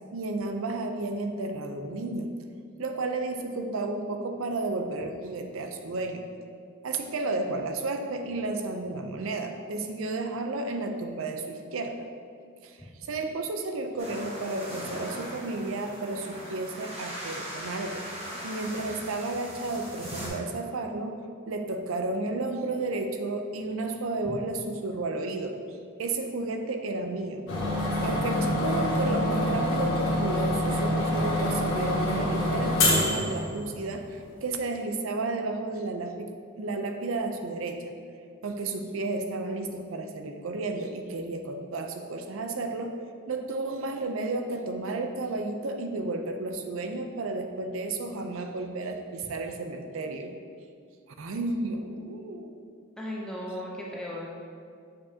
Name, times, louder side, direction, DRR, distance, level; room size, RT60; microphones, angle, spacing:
voice 1, 0.1-2.3 2.8-6.3 6.8-12.1 12.6-18.1 18.4-27.5 28.0-37.9 38.4-43.0 43.3-50.3 51.2-52.6, right 2 dB, 80° right, 5 dB, 0.5 m, -32 dB
sound 1, 14.0-20.3, equal, 30° right, 1.2 m, -39 dB
sound 2, 27.5-34.0, left 1 dB, 80° left, 1.4 m, -26 dB
voice 2, 53.0-54.3, left 1 dB, 5° left, -4 dB, 0.6 m, -36 dB
6.9 x 5.2 x 2.8 m, 2.2 s
head